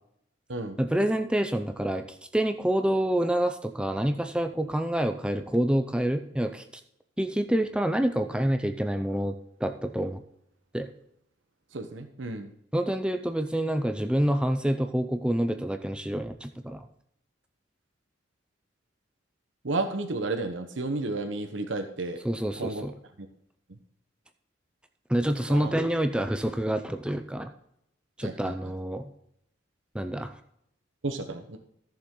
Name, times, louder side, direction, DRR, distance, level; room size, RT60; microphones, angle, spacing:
voice 1, 0.8-2.0 2.3-6.6 7.2-9.3 9.6-10.2 10.7-10.9 12.7-16.8 22.2-22.9 25.1-27.5 28.2-29.1 29.9-30.3, right 1 dB, 5° right, 7 dB, 0.5 m, -27 dB
voice 2, 11.7-12.5 19.6-22.2 22.6-22.9 23.2-23.3 23.7-23.8 25.5-25.7 28.2-28.7 31.0-31.6, right 2 dB, 80° right, 6 dB, 1.0 m, -32 dB
14.0 x 6.9 x 3.8 m, 0.76 s
head